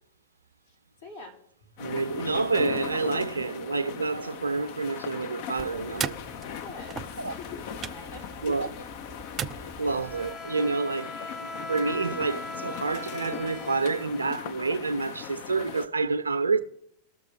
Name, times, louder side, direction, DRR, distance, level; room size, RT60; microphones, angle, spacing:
voice 1, 1.0-1.4 6.6-7.6 7.9-8.9, left 4 dB, 65° left, 2.8 m, -44 dB
sound 1, 1.8-15.9, left 9 dB, 50° left, 0.6 m, -39 dB
voice 2, 1.8-6.2 7.2-7.3 8.4-8.7 9.8-16.6, right 4 dB, 75° right, 0.6 m, -28 dB
sound 2, 5.6-10.4, right 8 dB, 25° right, 0.3 m, -38 dB
Bowed string instrument, 9.8-14.9, left 2 dB, 25° left, 1.3 m, -40 dB
19.5 x 6.6 x 3.2 m
figure-of-eight pair, 90°, 0 cm